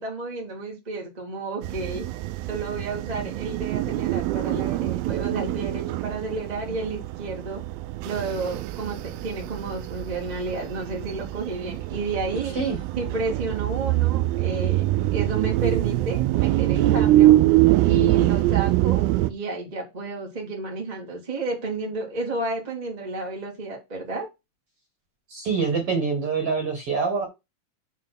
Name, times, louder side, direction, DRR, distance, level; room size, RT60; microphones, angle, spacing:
voice 1, 0.0-2.1 2.5-7.6 8.0-12.5 12.9-14.8 15.1-17.3 17.8-24.3, right 3 dB, 20° right, 1.3 m, -31 dB
sound 1, 1.6-19.3, right 16 dB, 80° right, 2.3 m, -24 dB
voice 2, 25.3-27.3, right 5 dB, 45° right, 2.3 m, -25 dB
7.4 x 3.8 x 5.9 m
omnidirectional pair, 4.7 m